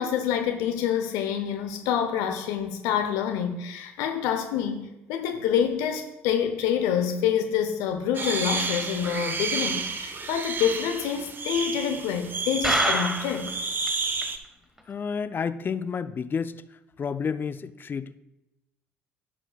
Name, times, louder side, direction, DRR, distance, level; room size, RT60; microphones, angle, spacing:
voice 1, 0.0-13.5, left 8 dB, 65° left, 6 dB, 0.8 m, -27 dB
sound 1, 8.1-14.4, right 4 dB, 35° right, 1.1 m, -30 dB
sound 2, 12.6-13.5 13.9-14.0 14.2-14.3 14.8-14.9, equal, 5° right, 1.2 m, -26 dB
voice 2, 14.9-16.5 17.0-18.1, left 6 dB, 35° left, 13 dB, 0.5 m, -30 dB
16.0 x 6.2 x 2.3 m, 0.94 s
hypercardioid pair, 60°, 6 cm